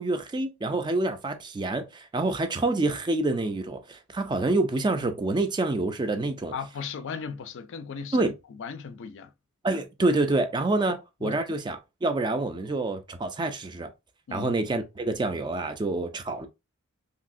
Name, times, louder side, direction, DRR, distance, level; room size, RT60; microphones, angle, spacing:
voice 1, 0.0-6.5 8.1-8.3 9.6-13.9 14.3-16.5, right 2 dB, 20° right, 0.3 m, -27 dB
voice 2, 6.5-8.3 8.6-9.3 11.2-11.4 14.3-14.5, left 6 dB, 60° left, 0.4 m, -36 dB
3.1 x 2.7 x 2.5 m
head